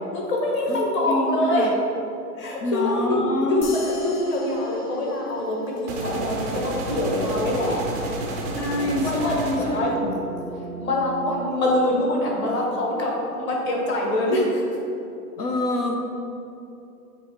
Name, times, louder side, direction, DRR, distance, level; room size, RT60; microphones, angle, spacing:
voice 1, 0.1-1.7 2.3-7.8 8.5-9.9 10.5-14.6, left 1 dB, 25° left, -2 dB, 1.2 m, -25 dB
voice 2, 1.1-1.7 2.6-3.7 8.5-10.1 15.4-16.0, left 1 dB, 80° left, 2 dB, 0.9 m, -26 dB
sound 1, 3.6-6.4, left 3 dB, 50° left, 1.3 m, -42 dB
sound 2, 5.9-9.9, right 2 dB, 15° right, 0.3 m, -30 dB
sound 3, 8.5-14.0, right 4 dB, 5° left, 0.9 m, -41 dB
9.0 x 3.1 x 4.6 m, 2.8 s
hypercardioid pair, 120°, 45 cm